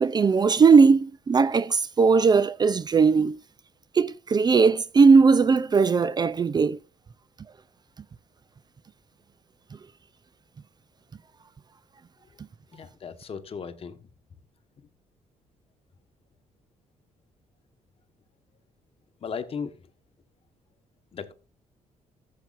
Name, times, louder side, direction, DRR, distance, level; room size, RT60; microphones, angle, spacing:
voice 1, 0.0-3.4 3.9-6.8, right 5 dB, 30° right, 0.4 m, -19 dB
voice 2, 12.7-14.0 19.2-19.8 21.1-21.3, left 6 dB, 50° left, 1.3 m, -36 dB
14.0 x 7.6 x 2.5 m
cardioid pair, 90°, 13 cm